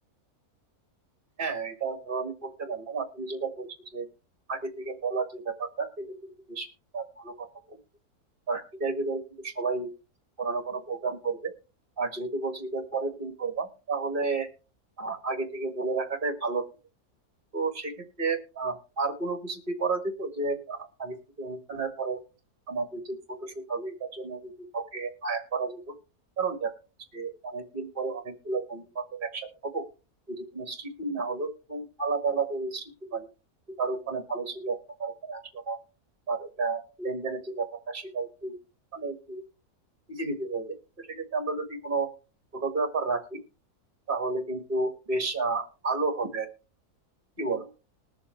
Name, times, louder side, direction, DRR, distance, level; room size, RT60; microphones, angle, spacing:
voice 1, 1.4-4.1 4.5-6.7 6.9-7.8 8.5-9.9 10.4-11.5 12.0-14.5 15.0-16.7 17.5-17.9 18.2-22.2 22.7-25.9 26.4-26.7 27.1-29.8 30.3-33.3 33.8-35.8 36.3-38.6 38.9-39.4 40.1-42.1 42.5-43.4 44.1-46.5 47.4-47.7, right 4 dB, 35° right, 6 dB, 2.0 m, -32 dB
21.0 x 7.2 x 3.3 m, 0.33 s
omnidirectional pair, 1.6 m